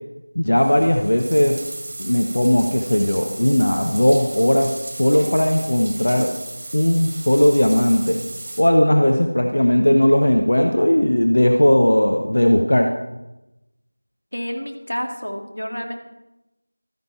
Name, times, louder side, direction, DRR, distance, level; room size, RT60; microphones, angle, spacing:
voice 1, 0.3-1.6 2.0-6.3 6.7-8.2 8.6-12.9, left 1 dB, 55° left, 3 dB, 1.0 m, -17 dB
Bathtub (filling or washing), 0.6-8.6, right 2 dB, 20° right, 1.7 m, -35 dB
voice 2, 14.3-15.9, equal, 85° left, 3 dB, 2.2 m, -29 dB
13.0 x 10.5 x 4.5 m, 0.96 s
figure-of-eight pair, 175°, 0 cm